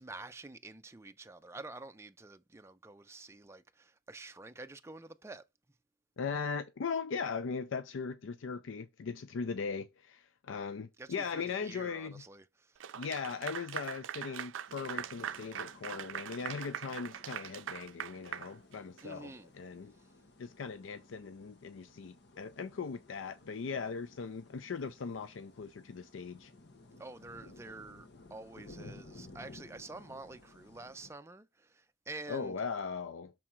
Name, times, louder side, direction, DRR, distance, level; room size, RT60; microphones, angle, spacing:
voice 1, 0.0-5.4 11.0-12.8 19.0-19.5 27.0-32.6, right 2 dB, 15° right, 0.4 m, -48 dB
voice 2, 6.2-12.2 12.9-19.9 20.4-26.5 32.3-33.3, left 5 dB, 85° left, 0.4 m, -39 dB
Clapping / Applause, 12.8-19.2, right 9 dB, 85° right, 0.4 m, -42 dB
sound 1, 14.7-31.1, left 2 dB, 60° left, 1.0 m, -57 dB
6.1 x 3.7 x 4.3 m
head